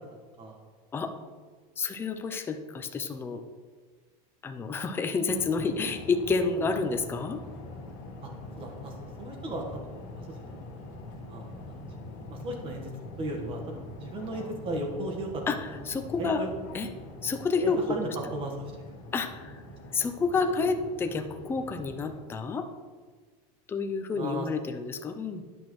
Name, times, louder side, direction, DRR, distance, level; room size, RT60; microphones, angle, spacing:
voice 1, 1.8-3.4 4.4-7.4 15.5-16.5 16.7-16.9 17.2-18.0 19.1-19.6 19.9-22.6 23.7-25.4, left 4 dB, 10° left, 5 dB, 0.4 m, -29 dB
sound 1, 5.2-22.2, left 2 dB, 45° left, 1.5 m, -44 dB
voice 2, 8.6-9.8 10.1-10.7 11.3-11.8 12.3-12.9 13.2-15.4 16.2-16.5 17.6-18.7 20.6-20.7 24.1-24.5, right 1 dB, 30° right, 2 dB, 1.3 m, -36 dB
10.5 x 6.0 x 3.1 m, 1.5 s
supercardioid pair, 155°, 19 cm